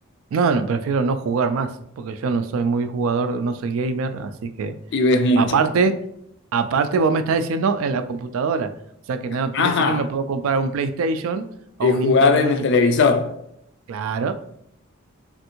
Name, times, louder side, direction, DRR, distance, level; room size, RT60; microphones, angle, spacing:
voice 1, 0.3-1.7 2.0-4.7 5.4-6.0 6.5-8.7 9.1-11.5 11.8-12.7 13.9-14.3, right 4 dB, 70° right, 0.3 m, -23 dB
voice 2, 4.9-5.6 9.5-10.1 11.8-13.4, left 3 dB, 55° left, 0.3 m, -18 dB
3.4 x 2.5 x 2.8 m
head